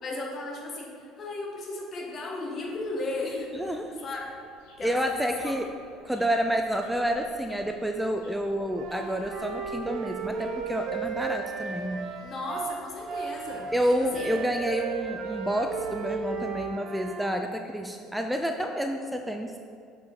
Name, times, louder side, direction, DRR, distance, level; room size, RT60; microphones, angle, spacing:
voice 1, 0.0-3.6 4.0-4.2 4.8-5.6 12.2-13.7 14.0-14.3, left 2 dB, 45° left, 0 dB, 1.4 m, -35 dB
sound 1, 2.6-16.5, left 1 dB, 80° left, 1.7 m, -55 dB
voice 2, 3.5-4.0 4.8-5.7 6.0-12.1 13.7-19.6, equal, 5° right, 4 dB, 0.4 m, -29 dB
Wind instrument woodwind instrument, 8.7-17.3, right 5 dB, 55° right, 1.0 m, -35 dB
7.0 x 5.0 x 4.3 m, 2.4 s
supercardioid pair, 80°, 0 cm